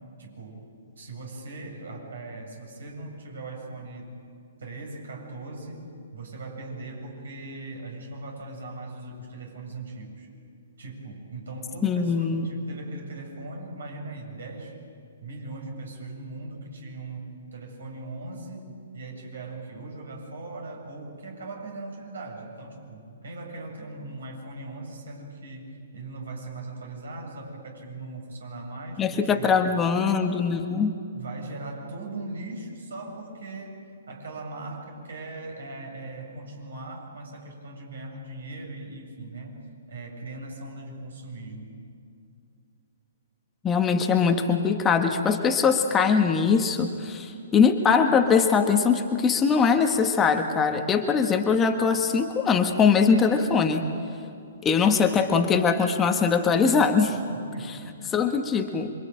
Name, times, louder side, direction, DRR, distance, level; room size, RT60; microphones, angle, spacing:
voice 1, 0.2-0.6 1.0-4.1 4.6-5.9 6.1-10.3 10.8-14.8 15.2-29.6 31.1-39.6 39.9-41.8 57.3-57.9, right 2 dB, 65° right, 2 dB, 7.4 m, -39 dB
voice 2, 11.8-12.5 29.0-30.9 43.6-53.9 54.6-57.2 58.1-58.9, left 5 dB, 15° left, 5 dB, 1.5 m, -22 dB
27.0 x 24.5 x 9.0 m, 2.5 s
figure-of-eight pair, 120°, 0 cm